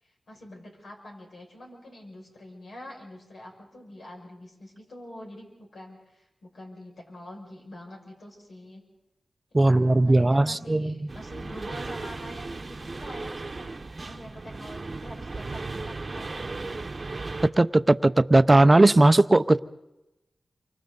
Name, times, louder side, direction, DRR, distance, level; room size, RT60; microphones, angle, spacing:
voice 1, 0.0-8.8 9.5-13.8 14.1-17.2, left 1 dB, 75° left, -1 dB, 6.2 m, -45 dB
voice 2, 9.5-10.9 17.6-19.6, right 2 dB, 25° right, 13 dB, 0.7 m, -18 dB
sound 1, 11.1-17.5, right 3 dB, 45° right, 1.0 m, -36 dB
28.5 x 25.0 x 4.0 m, 0.95 s
cardioid pair, 65°, 0 cm